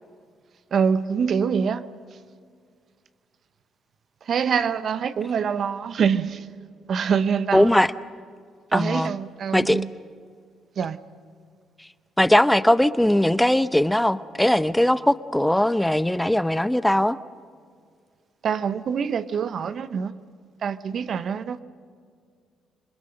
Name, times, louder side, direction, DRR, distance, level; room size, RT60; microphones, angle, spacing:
voice 1, 0.7-1.8 4.3-6.4 6.9-7.7 8.7-9.9 10.8-11.0 18.4-20.1 20.6-21.6, right 6 dB, 60° right, 0.8 m, -25 dB
voice 2, 7.5-7.9 8.7-9.1 9.5-9.8 12.2-17.2, left 1 dB, 5° left, 0.7 m, -20 dB
26.5 x 21.0 x 6.5 m
supercardioid pair, 55°, 0 cm